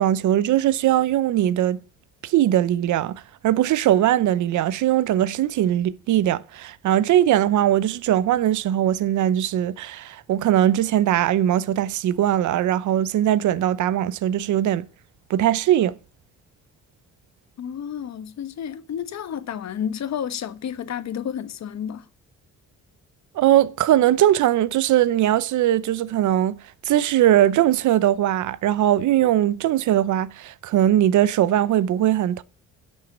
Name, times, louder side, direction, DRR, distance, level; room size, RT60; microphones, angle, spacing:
voice 1, 0.0-1.8 2.2-14.9 15.3-16.0 23.3-26.6 26.8-32.4, right 12 dB, 75° right, 0.8 m, -20 dB
voice 2, 17.6-22.0, left 8 dB, 60° left, 1.4 m, -31 dB
11.0 x 6.4 x 8.5 m
cardioid pair, 90°, 30 cm